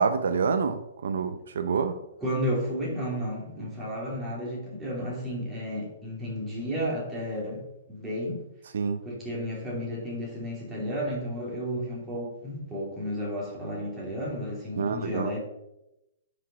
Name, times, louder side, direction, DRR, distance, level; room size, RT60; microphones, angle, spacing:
voice 1, 0.0-2.0 8.7-9.0 14.8-15.3, right 5 dB, 75° right, 9 dB, 0.7 m, -27 dB
voice 2, 2.2-7.6 7.9-8.4 9.0-15.4, equal, 10° right, -5 dB, 2.7 m, -32 dB
8.7 x 5.3 x 5.2 m, 0.90 s
hypercardioid pair, 165°, 0 cm